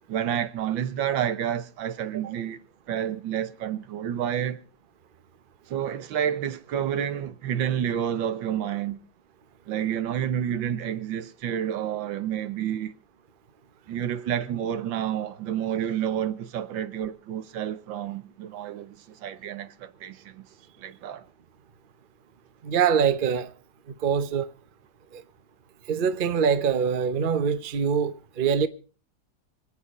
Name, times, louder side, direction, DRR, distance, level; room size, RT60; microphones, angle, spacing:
voice 1, 0.1-4.6 5.7-9.0 9.7-12.9 13.9-20.4 20.8-21.2, right 9 dB, 85° right, 1.7 m, -29 dB
voice 2, 22.6-23.5 24.0-24.5 25.1-25.2 25.9-28.7, right 7 dB, 40° right, 0.8 m, -24 dB
26.0 x 8.9 x 4.2 m
omnidirectional pair, 2.0 m